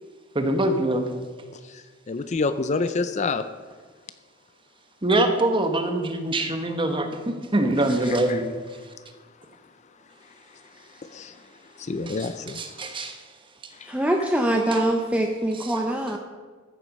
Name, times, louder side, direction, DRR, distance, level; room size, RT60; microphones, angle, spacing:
voice 1, 0.3-1.1 5.0-8.4 12.1-13.2, right 1 dB, 25° right, 6 dB, 1.1 m, -24 dB
voice 2, 1.6-3.4 8.3-8.4 11.1-11.3 11.8-12.6 13.8-13.9, left 3 dB, 35° left, 11 dB, 0.4 m, -28 dB
voice 3, 13.9-16.2, right 1 dB, 5° right, 2 dB, 0.7 m, -23 dB
14.0 x 7.6 x 5.3 m, 1.5 s
head